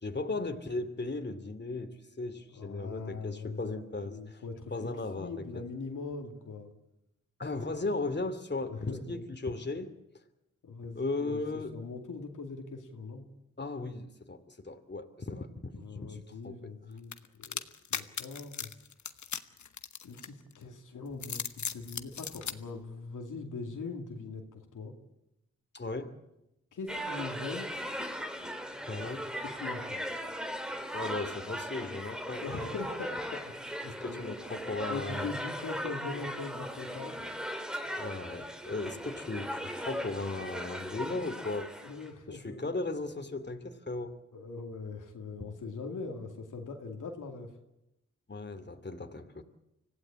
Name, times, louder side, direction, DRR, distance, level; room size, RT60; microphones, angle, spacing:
voice 1, 0.0-4.4 4.7-5.3 7.4-9.9 10.9-11.7 13.6-16.2 16.4-16.6 25.7-26.1 28.9-29.3 30.9-32.8 34.0-35.3 38.0-41.7 42.3-44.2 48.3-49.4, left 3 dB, 35° left, 7 dB, 2.5 m, -36 dB
voice 2, 2.5-4.9 5.2-6.7 8.7-9.3 10.6-11.4 11.7-13.2 15.8-17.1 17.4-17.6 17.9-18.7 20.0-24.9 26.7-27.7 29.4-30.0 32.4-34.4 34.9-37.3 41.8-42.8 44.3-47.5, left 4 dB, 90° left, 2 dB, 2.4 m, -41 dB
sound 1, 17.1-20.6 21.1-22.6, left 7 dB, 70° left, 1.2 m, -37 dB
sound 2, 26.9-42.1, equal, ahead, 2.8 m, -38 dB
25.5 x 16.0 x 8.7 m, 0.87 s
cardioid pair, 45°, 30 cm